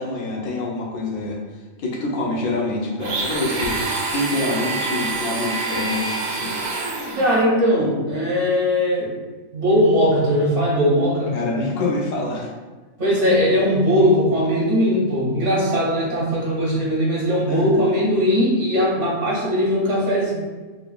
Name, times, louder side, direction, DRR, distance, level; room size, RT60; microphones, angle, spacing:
voice 1, 0.0-1.4 1.8-3.8 4.1-6.5 11.3-12.5 17.5-17.8, left 2 dB, 90° left, -1 dB, 1.3 m, -26 dB
Domestic sounds home sounds, 3.0-7.4, right 3 dB, 85° right, 1.2 m, -26 dB
voice 2, 7.1-9.1 9.5-11.3 13.0-20.3, equal, 55° right, -5 dB, 1.5 m, -19 dB
4.0 x 3.9 x 2.2 m, 1.3 s
omnidirectional pair, 1.5 m